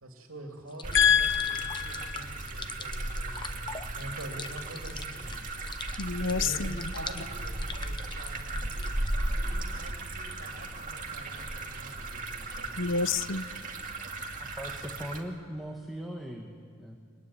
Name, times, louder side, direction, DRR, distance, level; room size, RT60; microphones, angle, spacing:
voice 1, 0.0-5.5 5.8-5.9 6.4-8.8 9.3-12.9, right 1 dB, 75° right, 2 dB, 2.9 m, -46 dB
sound 1, 0.7-9.1, left 5 dB, 20° left, 0.9 m, -43 dB
sound 2, 0.8-15.2, right 2 dB, 40° right, 2.4 m, -36 dB
voice 2, 0.9-2.2 6.0-7.0 12.8-13.5, left 7 dB, 60° left, 14 dB, 0.8 m, -27 dB
voice 3, 14.4-17.0, equal, ahead, 1 dB, 1.8 m, -39 dB
26.0 x 21.5 x 10.0 m, 2.1 s
head